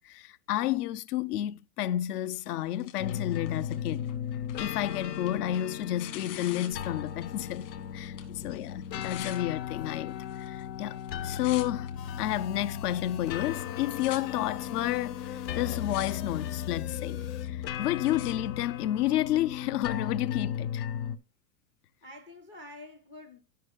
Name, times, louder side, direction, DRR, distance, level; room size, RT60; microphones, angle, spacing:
voice 1, 0.0-4.1 4.6-8.1 8.4-11.9 12.2-20.8, left 13 dB, 65° left, 0.7 m, -31 dB
Tearing, 2.3-7.8 8.0-9.4 10.1-10.6 10.9-11.9 12.5-12.6 13.3-13.4 13.6-14.2 14.9-15.0 15.5-16.1 16.4-16.9 17.4-18.3 19.1-19.2, left 12 dB, 50° left, 2.3 m, -47 dB
sound 1, 3.0-21.2, left 9 dB, 85° left, 1.1 m, -36 dB
sound 2, 12.0-17.5, left 10 dB, 30° left, 0.8 m, -46 dB
voice 2, 22.0-23.4, left 1 dB, 15° left, 0.3 m, -48 dB
13.5 x 5.6 x 2.3 m
supercardioid pair, 155°, 49 cm